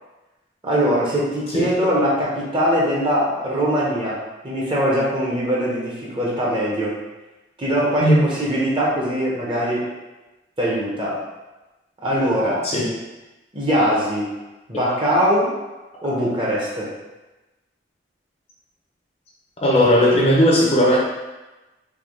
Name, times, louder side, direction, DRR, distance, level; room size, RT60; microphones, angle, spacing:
voice 1, 0.6-4.2 4.4-7.0 7.6-9.8 10.6-11.2 12.0-12.6 13.5-14.4 14.7-15.5 16.0-16.9, equal, 30° right, -5 dB, 0.9 m, -21 dB
voice 2, 19.6-21.0, equal, 35° left, -3 dB, 0.7 m, -16 dB
3.5 x 2.7 x 3.8 m, 1.1 s
head